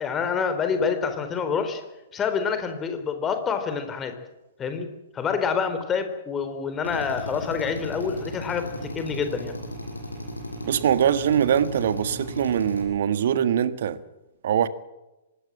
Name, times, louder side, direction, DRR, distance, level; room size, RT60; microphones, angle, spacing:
voice 1, 0.0-1.8 2.1-4.1 4.6-4.9 5.1-9.6, left 6 dB, 15° left, 3.9 m, -27 dB
Drill, 6.8-12.8, left 1 dB, 80° left, 7.8 m, -36 dB
voice 2, 10.6-14.0 14.4-14.7, right 9 dB, 50° right, 1.7 m, -22 dB
25.5 x 20.0 x 7.6 m
figure-of-eight pair, 115°, 0 cm